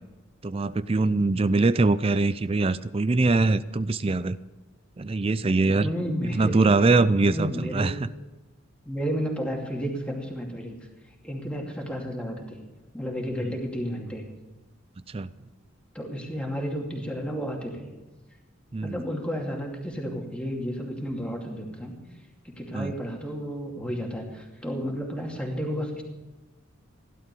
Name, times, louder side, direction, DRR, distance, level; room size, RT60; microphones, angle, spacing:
voice 1, 0.4-4.4 5.0-5.9 6.4-7.9 15.1-15.3 18.7-19.0 22.7-22.9, right 3 dB, 25° right, 16 dB, 0.4 m, -23 dB
voice 2, 5.8-6.6 7.3-8.0 8.9-10.8 11.2-12.6 12.9-14.2 15.9-17.9 18.8-21.9 22.4-26.0, equal, 5° left, 0 dB, 2.5 m, -32 dB
16.5 x 11.5 x 6.9 m, 1.1 s
head